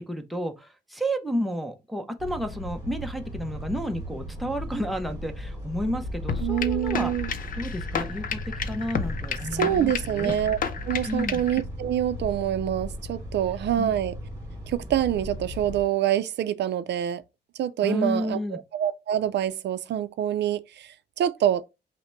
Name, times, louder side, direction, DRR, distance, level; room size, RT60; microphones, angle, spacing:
voice 1, 0.0-7.1 7.5-8.4 8.7-10.3 11.1-11.4 13.8-14.0 17.8-18.6, equal, ahead, 0.6 m, -31 dB
sound 1, 2.2-15.8, equal, 20° right, 1.8 m, -36 dB
sound 2, 6.3-11.6, left 7 dB, 50° left, 0.5 m, -32 dB
voice 2, 6.4-7.3 9.5-10.6 10.8-14.1 14.7-17.2 17.6-21.6, right 11 dB, 85° right, 0.4 m, -26 dB
5.7 x 2.1 x 4.3 m
wide cardioid pair, 165°, 18 cm